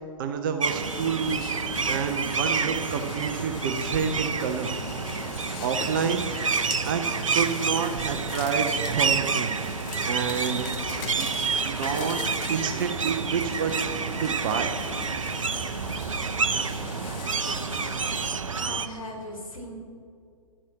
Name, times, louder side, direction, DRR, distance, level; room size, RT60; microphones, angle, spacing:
voice 1, 0.2-1.5 1.9-4.7 5.3-6.3 6.8-7.0 7.3-10.7 11.2-11.3 11.6-12.2 12.5-13.8 14.2-14.7, right 6 dB, 40° right, 7 dB, 0.8 m, -29 dB
sound 1, 0.6-18.9, right 5 dB, 70° right, 0.7 m, -29 dB
sound 2, 0.7-18.3, left 5 dB, 30° left, 1.1 m, -40 dB
voice 2, 16.5-17.7 18.6-19.7, left 1 dB, 80° left, 0 dB, 3.2 m, -41 dB
11.0 x 10.0 x 6.1 m, 2.3 s
figure-of-eight pair, 115°, 17 cm